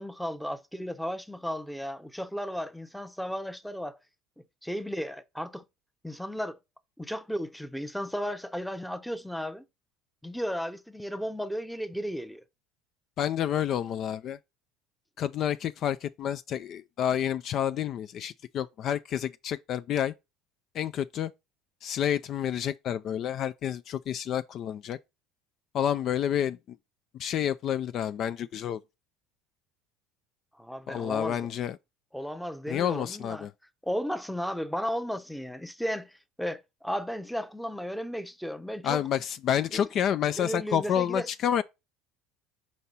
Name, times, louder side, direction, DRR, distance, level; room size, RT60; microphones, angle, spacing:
voice 1, 0.0-4.0 4.6-5.6 6.0-6.6 7.0-9.6 10.2-12.4 30.6-31.5 32.1-33.5 33.8-36.1 36.4-39.0 39.7-39.8 40.4-41.3, equal, ahead, 0.7 m, -34 dB
voice 2, 13.2-14.4 15.2-20.1 20.7-21.3 21.8-25.0 25.7-26.8 27.2-28.8 30.9-31.8 32.7-33.5 38.8-41.6, left 9 dB, 50° left, 0.3 m, -29 dB
5.3 x 4.4 x 4.1 m
hypercardioid pair, 70°, 0 cm